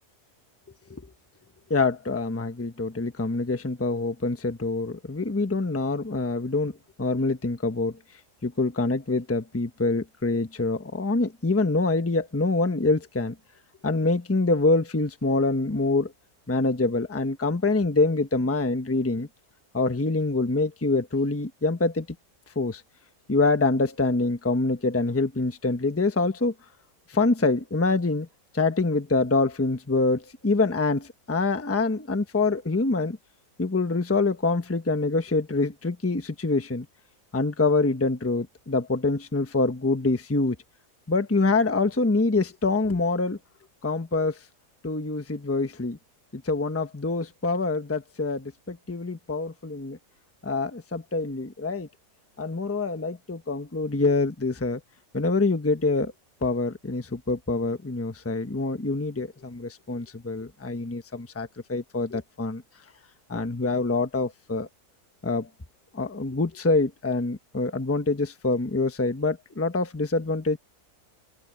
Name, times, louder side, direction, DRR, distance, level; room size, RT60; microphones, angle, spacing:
voice 1, 1.7-8.0 8.4-13.3 13.8-16.1 16.5-19.3 19.7-22.1 22.5-22.8 23.3-26.5 27.1-28.3 28.5-33.2 33.6-36.9 37.3-40.6 41.1-43.4 43.8-44.4 44.8-46.0 46.3-50.0 50.4-51.9 52.4-54.8 55.1-56.1 56.4-62.6 63.3-64.7 65.2-65.5 65.9-70.6, left 3 dB, 10° left, 1.0 m, -25 dB
omnidirectional pair, 1.7 m